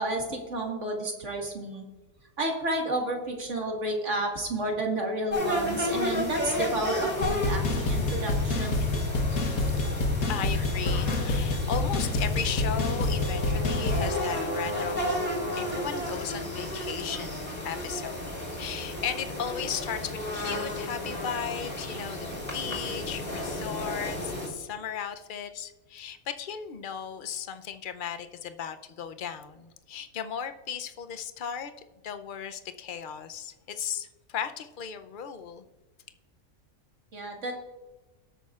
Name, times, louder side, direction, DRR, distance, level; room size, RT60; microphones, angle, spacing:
voice 1, 0.0-1.8 2.4-8.8 37.1-37.5, right 1 dB, 55° right, 1 dB, 2.2 m, -31 dB
sound 1, 5.3-24.5, left 1 dB, 30° left, 4.2 m, -33 dB
sound 2, 7.2-14.1, left 2 dB, 70° left, 1.7 m, -27 dB
voice 2, 8.6-8.9 9.7-9.8 10.3-15.2 15.6-18.3 18.6-31.7 32.0-35.6, left 8 dB, 50° left, 9 dB, 0.6 m, -36 dB
Brass instrument, 12.2-16.5, equal, 80° right, 4.2 m, -35 dB
18.5 x 8.5 x 2.4 m, 1.2 s
omnidirectional pair, 1.5 m